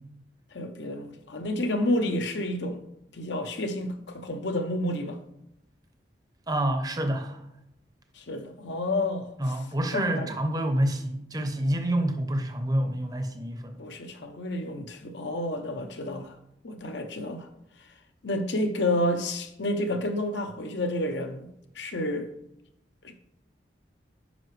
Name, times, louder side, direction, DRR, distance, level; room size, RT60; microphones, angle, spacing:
voice 1, 0.5-2.8 3.1-5.2 8.2-9.6 9.9-10.3 13.8-16.4 16.6-17.5 18.2-21.5 21.7-22.3 23.0-23.1, left 1 dB, 70° left, 0.8 m, -30 dB
voice 2, 6.5-7.4 9.4-13.8, right 1 dB, 20° right, 0.7 m, -27 dB
9.1 x 5.8 x 3.2 m
head